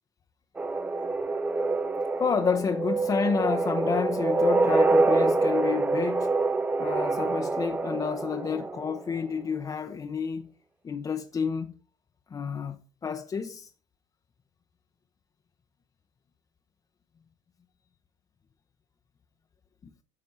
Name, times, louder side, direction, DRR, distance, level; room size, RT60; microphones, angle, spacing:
sound 1, 0.6-9.2, right 3 dB, 10° right, 0.5 m, -26 dB
voice 1, 2.2-6.3 6.8-10.5 10.8-11.7 12.3-13.7, left 6 dB, 25° left, 0.7 m, -30 dB
9.8 x 5.9 x 4.1 m
supercardioid pair, 110°, 14 cm